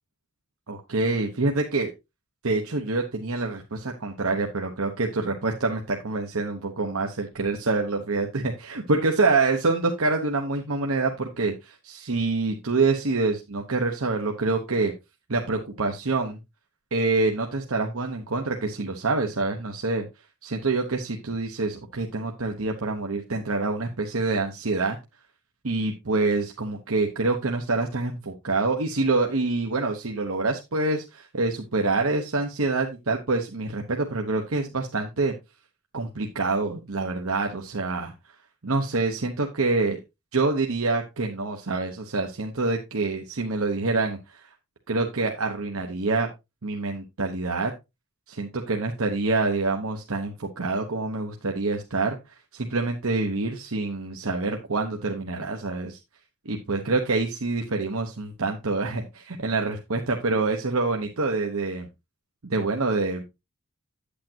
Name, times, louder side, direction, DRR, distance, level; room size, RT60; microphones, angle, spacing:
voice 1, 0.7-1.9 2.4-14.9 15.3-16.4 16.9-20.0 20.4-25.0 25.6-35.3 35.9-38.1 38.6-40.0 40.3-44.4 44.9-46.3 46.6-47.7 48.3-52.2 52.5-56.0 56.4-61.9 62.4-63.2, right 3 dB, 65° right, 3 dB, 1.1 m, -26 dB
8.9 x 8.4 x 2.9 m, 0.23 s
head